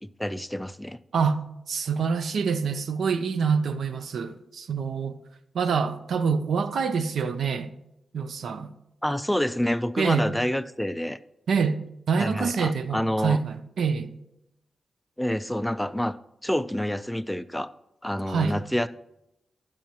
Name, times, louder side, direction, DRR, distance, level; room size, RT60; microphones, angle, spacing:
voice 1, 0.0-1.0 9.0-11.2 12.2-13.4 15.2-16.1 16.4-17.7 18.0-18.9, left 1 dB, 5° left, 0.3 m, -28 dB
voice 2, 1.7-5.2 5.5-7.7 8.1-8.7 10.0-10.3 11.5-11.8 12.1-14.1 18.3-18.6, right 5 dB, 80° right, 0.5 m, -26 dB
10.5 x 7.5 x 2.9 m
cardioid pair, 80°, 0 cm